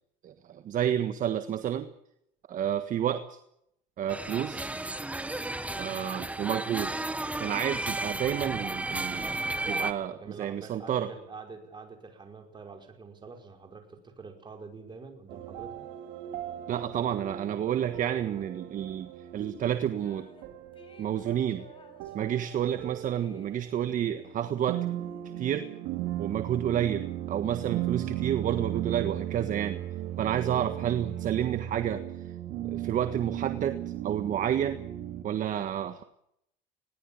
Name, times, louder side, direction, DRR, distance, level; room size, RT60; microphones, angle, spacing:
voice 1, 0.2-1.9 2.5-3.4 4.0-4.7 5.8-6.9 7.4-9.3 9.7-11.1 16.7-20.3 21.0-21.6 22.1-24.8 25.4-25.7 26.2-29.8 30.2-32.0 32.7-33.8 34.0-34.8 35.2-36.0, right 10 dB, 45° right, 9 dB, 1.5 m, -30 dB
sound 1, 4.1-9.9, right 2 dB, 5° right, 1.5 m, -33 dB
voice 2, 10.2-15.8, right 4 dB, 25° right, 4 dB, 5.3 m, -46 dB
sound 2, 15.3-35.2, right 13 dB, 75° right, 3.2 m, -37 dB
sound 3, 19.6-20.5 20.7-25.4, left 2 dB, 30° left, 6.6 m, -57 dB
21.0 x 18.5 x 8.8 m, 0.77 s
cardioid pair, 120°, 19 cm